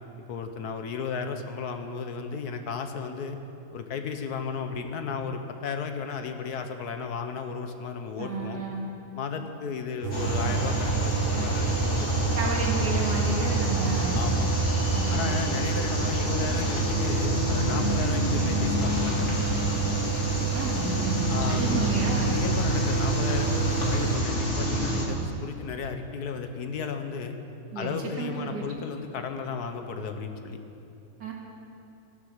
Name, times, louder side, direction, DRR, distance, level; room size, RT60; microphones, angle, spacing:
voice 1, 0.3-3.4 3.7-8.6 9.1-12.4 14.1-14.5 15.1-19.3 21.3-27.4 27.7-30.6, left 5 dB, 70° left, 7 dB, 1.4 m, -34 dB
voice 2, 8.2-8.9 12.3-14.2 14.9-15.3 20.5-22.4 27.7-28.7 31.2-31.3, right 3 dB, 80° right, -2 dB, 2.8 m, -32 dB
sound 1, 10.0-24.2, right 10 dB, 65° right, 0.5 m, -31 dB
sound 2, 10.1-25.1, equal, 45° left, 2.5 m, -27 dB
15.0 x 11.0 x 6.5 m, 2.8 s
omnidirectional pair, 1.8 m